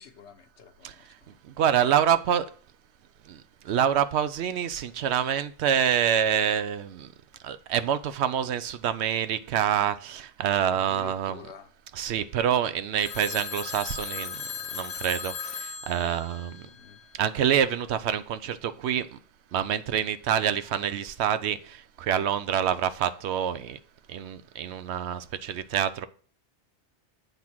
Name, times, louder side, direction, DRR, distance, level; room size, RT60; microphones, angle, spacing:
voice 1, 0.0-1.4 10.7-11.7 16.0-17.0, left 8 dB, 75° left, 1.1 m, -48 dB
voice 2, 1.3-2.5 3.2-7.1 7.4-11.4 12.0-16.7 17.1-19.2 19.5-23.8 24.1-26.1, right 9 dB, 75° right, 0.8 m, -27 dB
Telephone, 13.0-17.3, left 6 dB, 55° left, 0.4 m, -37 dB
7.9 x 3.6 x 5.9 m
omnidirectional pair, 1.2 m